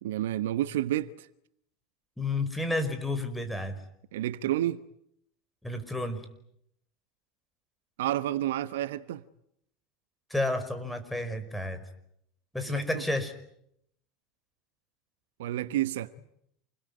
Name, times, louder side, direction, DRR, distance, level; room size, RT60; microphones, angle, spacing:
voice 1, 0.0-1.3 4.1-4.8 8.0-9.2 12.7-13.0 15.4-16.1, right 13 dB, 70° right, 1.0 m, -30 dB
voice 2, 2.2-3.8 5.6-6.3 10.3-11.8 12.5-13.3, left 2 dB, 5° left, 5.2 m, -31 dB
29.0 x 21.0 x 9.7 m
hypercardioid pair, 85°, 0 cm